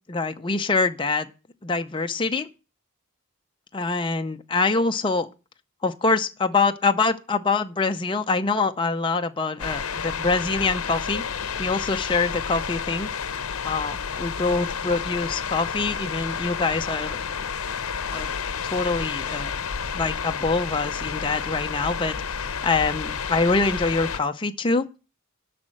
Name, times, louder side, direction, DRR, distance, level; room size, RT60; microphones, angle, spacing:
voice 1, 0.1-1.3 1.6-2.5 3.7-5.3 5.8-13.3 13.6-17.2 18.1-18.3 18.6-19.5 19.9-24.9, left 3 dB, 25° left, 0.5 m, -25 dB
sound 1, 9.6-24.2, left 6 dB, 85° left, 0.8 m, -30 dB
12.5 x 4.2 x 7.7 m
head